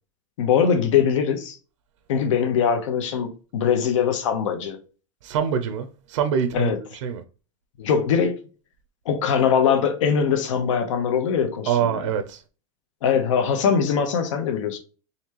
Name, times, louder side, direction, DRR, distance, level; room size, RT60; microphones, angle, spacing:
voice 1, 0.4-1.6 2.1-4.8 6.5-6.8 7.8-8.4 9.0-12.0 13.0-14.8, left 7 dB, 75° left, 1.1 m, -22 dB
voice 2, 5.2-7.2 11.7-12.4, right 8 dB, 75° right, 0.6 m, -25 dB
4.2 x 3.2 x 3.0 m
supercardioid pair, 170°, 16 cm